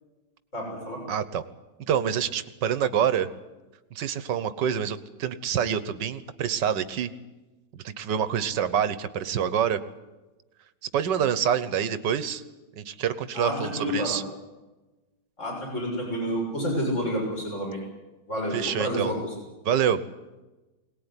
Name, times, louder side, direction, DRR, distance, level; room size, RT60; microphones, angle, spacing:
voice 1, 0.5-1.0 13.3-14.2 15.4-17.8 18.3-19.3, equal, 45° left, -1 dB, 7.0 m, -29 dB
voice 2, 1.1-1.4 1.9-3.3 3.9-7.1 7.7-9.8 10.9-12.4 12.8-14.2 18.5-19.1 19.6-20.0, right 8 dB, 85° right, 13 dB, 1.8 m, -26 dB
22.5 x 19.0 x 9.9 m, 1.1 s
omnidirectional pair, 1.9 m